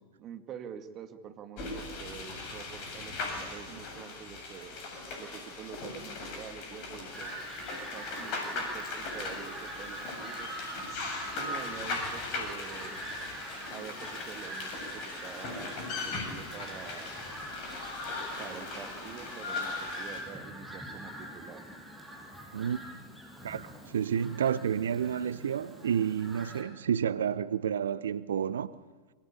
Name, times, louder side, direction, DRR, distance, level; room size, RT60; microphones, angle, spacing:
voice 1, 0.2-4.8 5.2-7.4 7.9-10.5 11.3-13.0 13.7-17.1 18.4-21.6, right 8 dB, 30° right, 2.4 m, -46 dB
sound 1, 1.6-20.2, left 3 dB, 40° left, 7.6 m, -39 dB
Fowl, 7.1-26.6, right 1 dB, ahead, 7.6 m, -44 dB
voice 2, 23.4-28.8, right 8 dB, 65° right, 0.7 m, -30 dB
27.5 x 24.5 x 8.7 m
figure-of-eight pair, 90°, 0 cm